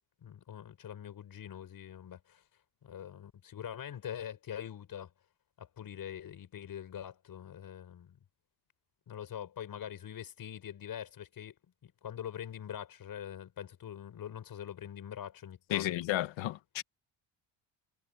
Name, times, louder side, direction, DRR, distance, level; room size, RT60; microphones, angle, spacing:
voice 1, 0.2-2.4 2.8-5.1 5.6-8.2 9.1-11.6 11.8-16.0, left 9 dB, 45° left, 5.7 m, -44 dB
voice 2, 15.7-16.8, left 14 dB, 70° left, 1.7 m, -32 dB
cardioid pair, 145°, 47 cm